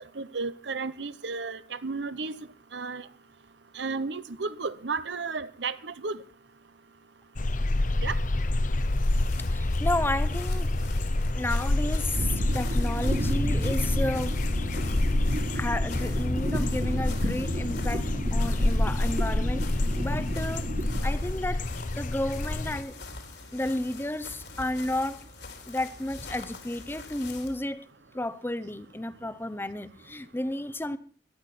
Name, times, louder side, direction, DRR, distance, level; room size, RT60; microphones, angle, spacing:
voice 1, 0.0-2.4 2.7-3.1 3.7-6.2 8.0-8.2, right 4 dB, 75° right, 0.8 m, -33 dB
sound 1, 7.4-22.8, left 2 dB, 45° left, 0.8 m, -28 dB
sound 2, 8.6-27.6, left 3 dB, 70° left, 3.3 m, -44 dB
voice 2, 9.5-10.7 11.3-14.4 15.5-19.7 19.9-20.7 21.0-21.7 22.0-23.0 23.5-25.2 25.7-27.9 28.1-31.0, left 1 dB, 10° left, 0.8 m, -32 dB
sound 3, 12.1-21.0, equal, 50° right, 2.4 m, -32 dB
17.5 x 12.0 x 6.1 m
head